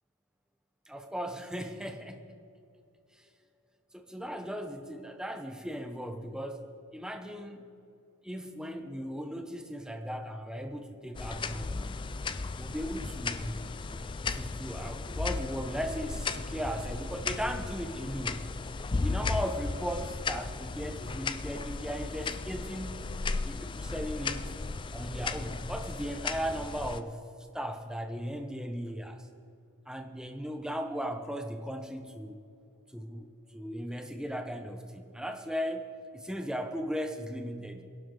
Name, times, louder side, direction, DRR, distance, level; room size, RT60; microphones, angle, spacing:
voice 1, 0.9-2.3 3.2-3.3 3.9-6.6 6.9-7.6 8.2-12.0 12.6-13.6 14.3-18.4 19.0-24.5 24.9-27.2 27.5-29.3 29.9-32.4 32.9-37.8, equal, 5° right, 5 dB, 0.8 m, -37 dB
sound 1, 11.1-27.0, left 4 dB, 20° left, 0.3 m, -35 dB
21.5 x 11.5 x 3.9 m, 2.6 s
head